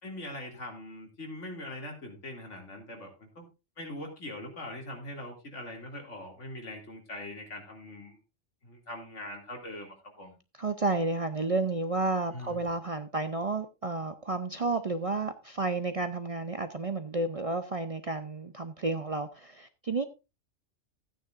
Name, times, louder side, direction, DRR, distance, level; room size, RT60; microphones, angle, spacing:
voice 1, 0.0-3.4 3.8-8.2 8.6-10.4 12.3-12.6, left 1 dB, 85° left, 2.7 m, -42 dB
voice 2, 10.6-20.0, right 3 dB, 45° right, 0.5 m, -31 dB
14.0 x 9.1 x 2.5 m
omnidirectional pair, 1.2 m